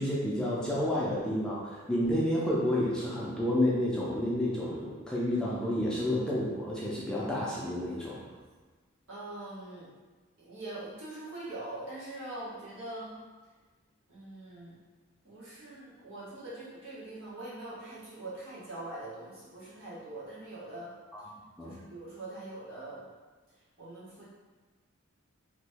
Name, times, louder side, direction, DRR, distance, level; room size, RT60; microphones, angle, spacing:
voice 1, 0.0-8.2 21.1-21.2 21.6-21.7, left 1 dB, 5° left, -7 dB, 0.4 m, -30 dB
voice 2, 9.1-9.9 10.4-13.2 14.1-14.8 15.2-20.9 21.6-23.1 23.8-24.3, right 2 dB, 70° right, -8 dB, 1.2 m, -43 dB
3.0 x 2.7 x 3.4 m, 1.3 s
head